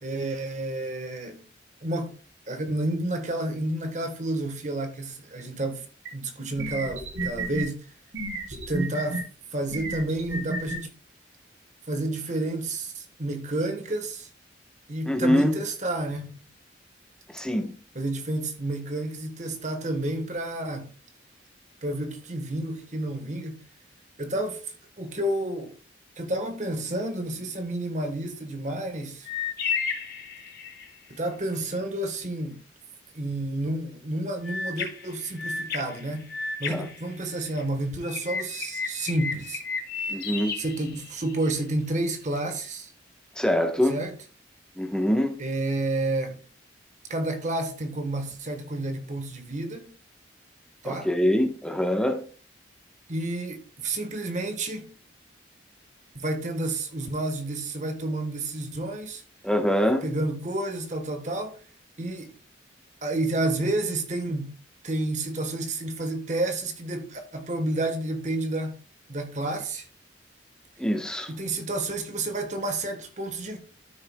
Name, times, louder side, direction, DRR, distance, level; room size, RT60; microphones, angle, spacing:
voice 1, 0.0-1.5 1.8-2.1 2.5-5.9 6.1-7.9 8.5-10.9 11.9-14.3 14.9-16.3 17.9-20.9 21.8-23.6 24.2-25.7 26.2-29.3 31.1-32.6 33.1-36.3 36.6-39.6 40.6-42.9 43.9-44.2 45.4-46.4 47.1-49.9 50.8-51.1 53.1-54.9 56.1-59.2 60.0-61.6 62.0-62.3 63.0-64.6 64.8-68.8 69.1-69.9 71.3-73.6, right 1 dB, 40° right, 1.3 m, -30 dB
sound 1, 6.0-6.1 6.6-7.6 8.1-9.2 9.7-10.8, right 2 dB, 90° right, 3.0 m, -31 dB
voice 2, 15.1-15.6 17.3-17.7 36.7-36.9 40.1-40.5 43.4-44.0 44.8-45.3 50.8-52.2 59.4-60.0 70.8-71.3, equal, 5° left, 1.1 m, -24 dB
sound 2, 29.3-31.0 34.4-37.6 38.0-41.5, left 5 dB, 55° left, 1.8 m, -33 dB
12.5 x 6.6 x 2.3 m
head